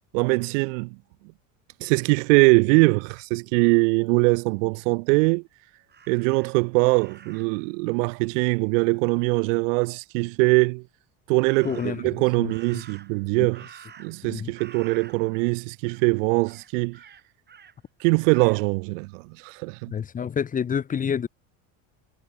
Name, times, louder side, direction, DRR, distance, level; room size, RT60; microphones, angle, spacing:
voice 1, 0.1-1.0 1.8-5.4 6.1-10.8 11.3-13.7 14.0-17.0 18.0-19.9, right 30 dB, 85° right, 0.7 m, -22 dB
Crow, 5.9-7.6 11.4-12.1 12.5-14.3 14.5-15.6 15.9-16.1 16.4-17.7 18.3-18.7, right 7 dB, 25° right, 2.1 m, -49 dB
voice 2, 11.6-12.0 12.4-12.5 14.3-14.5 19.9-21.3, left 7 dB, 20° left, 0.7 m, -27 dB
supercardioid pair, 115°, 37 cm